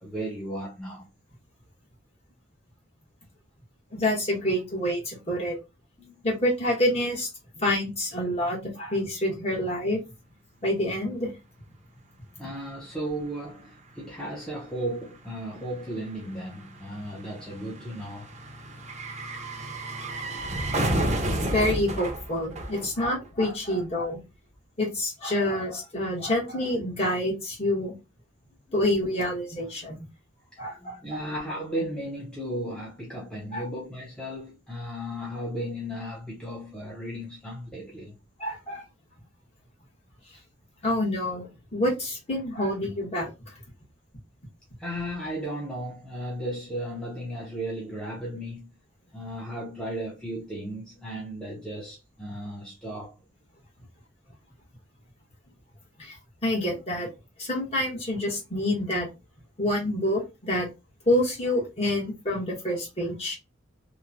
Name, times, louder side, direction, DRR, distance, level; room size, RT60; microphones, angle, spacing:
voice 1, 0.0-1.1 6.0-6.2 12.4-18.3 28.7-28.8 30.8-38.1 44.8-48.7 49.1-53.1, equal, 5° left, 0.6 m, -35 dB
voice 2, 3.9-5.6 6.2-7.3 7.6-10.0 10.6-11.3 21.4-24.2 24.8-27.9 28.7-30.1 30.6-31.2 33.5-33.6 38.4-38.8 40.8-43.3 56.0-56.1 56.4-57.1 57.4-59.1 59.6-60.7 61.1-63.4, left 1 dB, 35° left, 1.1 m, -27 dB
sound 1, 12.8-12.9 13.1-23.5 23.8-23.9, right 1 dB, 35° right, 0.6 m, -32 dB
3.0 x 2.1 x 2.4 m
head